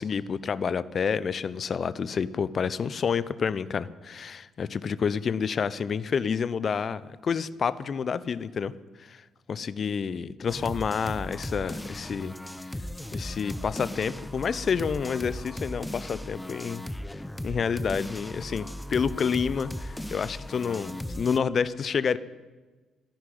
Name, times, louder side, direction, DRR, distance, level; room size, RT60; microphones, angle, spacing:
voice 1, 0.0-8.7 9.0-12.3 13.1-16.8 17.4-22.2, left 6 dB, 50° left, 17 dB, 0.7 m, -29 dB
sound 1, 10.5-21.4, left 1 dB, 10° left, 0.8 m, -37 dB
13.5 x 10.5 x 9.5 m, 1.3 s
hypercardioid pair, 45°, 0 cm